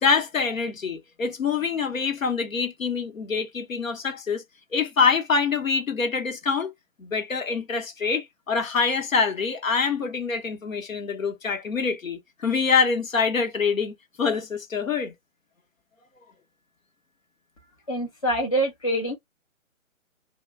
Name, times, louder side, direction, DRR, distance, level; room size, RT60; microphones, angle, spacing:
voice 1, 0.0-4.4 4.7-6.7 7.0-15.1, left 5 dB, 80° left, 1.0 m, -25 dB
voice 2, 17.9-19.2, right 1 dB, 25° left, 0.4 m, -25 dB
2.4 x 2.3 x 3.2 m
figure-of-eight pair, 145°, 40 cm